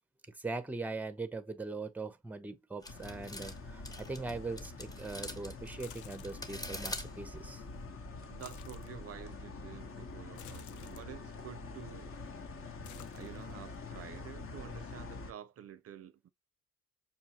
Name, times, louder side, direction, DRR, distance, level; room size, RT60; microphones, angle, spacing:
voice 1, 0.3-7.6, right 3 dB, 5° right, 0.6 m, -41 dB
sound 1, 2.8-7.8, left 1 dB, 10° left, 0.9 m, -45 dB
sound 2, 2.9-15.3, left 3 dB, 45° left, 1.0 m, -46 dB
sound 3, 5.8-6.6 8.2-8.9 10.3-11.1 11.9-12.3 12.5-13.7 14.1-14.9, left 10 dB, 75° left, 0.6 m, -54 dB
voice 2, 8.3-12.1 13.1-16.3, right 10 dB, 50° right, 0.5 m, -49 dB
5.6 x 2.2 x 2.8 m
cardioid pair, 90°, 30 cm